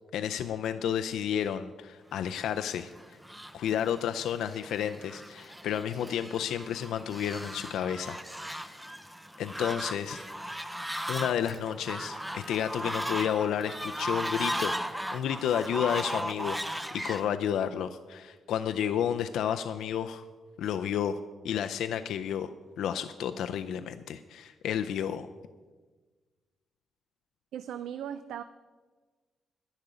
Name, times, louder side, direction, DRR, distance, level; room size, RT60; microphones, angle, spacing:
voice 1, 0.1-2.9 3.5-8.8 9.4-10.3 11.1-20.2 20.6-21.2 21.4-22.5 22.8-25.3, left 9 dB, 85° left, 9 dB, 0.4 m, -31 dB
Fowl, 2.4-17.3, equal, 5° right, 0.5 m, -37 dB
voice 2, 27.5-28.4, right 9 dB, 85° right, 12 dB, 0.4 m, -37 dB
11.0 x 10.5 x 4.9 m, 1.4 s
cardioid pair, 150°, 0 cm